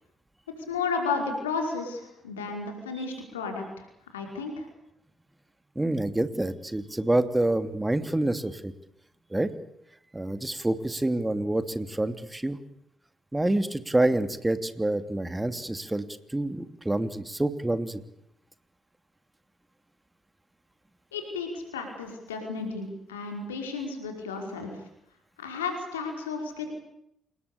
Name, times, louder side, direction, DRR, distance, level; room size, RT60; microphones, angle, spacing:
voice 1, 0.7-3.9 4.1-4.7 21.1-24.8 25.4-26.7, left 4 dB, 90° left, 3 dB, 5.2 m, -33 dB
voice 2, 5.7-8.7 9.3-9.5 10.1-12.6 13.3-18.0, right 1 dB, 15° right, 11 dB, 3.0 m, -27 dB
28.0 x 21.0 x 8.5 m, 0.76 s
hypercardioid pair, 45°, 0 cm